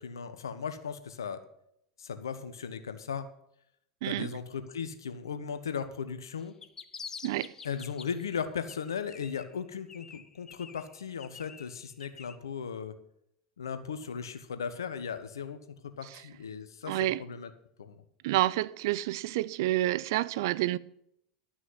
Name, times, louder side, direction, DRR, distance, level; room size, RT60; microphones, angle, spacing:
voice 1, 0.0-1.4 2.0-3.3 4.0-6.6 7.6-12.9 13.6-15.6 16.0-17.5 17.8-18.0, left 6 dB, 85° left, 1.0 m, -37 dB
voice 2, 4.0-4.3 7.2-7.5 16.9-17.2 18.2-20.8, right 15 dB, 65° right, 0.4 m, -29 dB
sound 1, 6.4-8.4 8.7-9.6 9.9-12.4, left 5 dB, 25° left, 0.8 m, -47 dB
11.5 x 6.1 x 7.9 m
hypercardioid pair, 85°, 2 cm